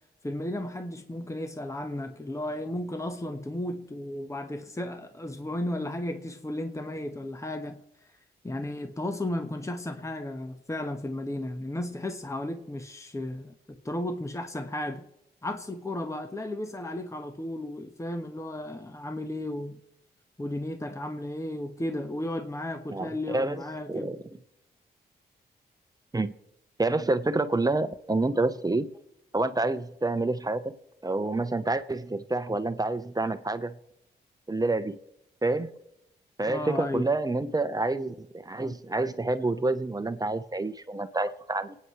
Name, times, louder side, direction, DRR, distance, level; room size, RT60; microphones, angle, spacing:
voice 1, 0.2-8.1 8.4-15.0 15.4-19.8 20.4-24.1 36.5-37.1, left 1 dB, 15° left, 1.3 m, -34 dB
voice 2, 22.9-23.6 23.9-24.2 26.1-26.3 26.8-28.9 29.3-30.7 31.0-33.7 34.5-35.0 35.4-35.7 36.4-41.8, right 2 dB, 20° right, 1.0 m, -28 dB
28.0 x 9.6 x 3.3 m
cardioid pair, 55°, 17 cm